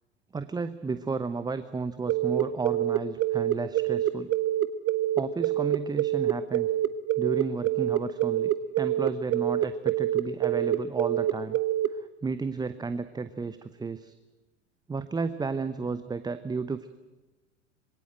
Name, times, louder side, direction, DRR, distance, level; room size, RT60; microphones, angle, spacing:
voice 1, 0.3-4.3 5.2-6.7 7.2-11.6 11.9-14.1 14.9-16.9, right 4 dB, 10° right, 12 dB, 0.8 m, -33 dB
sound 1, 2.1-11.9, right 13 dB, 35° right, 1.1 m, -26 dB
26.5 x 22.5 x 7.8 m, 1.2 s
figure-of-eight pair, 75°, 37 cm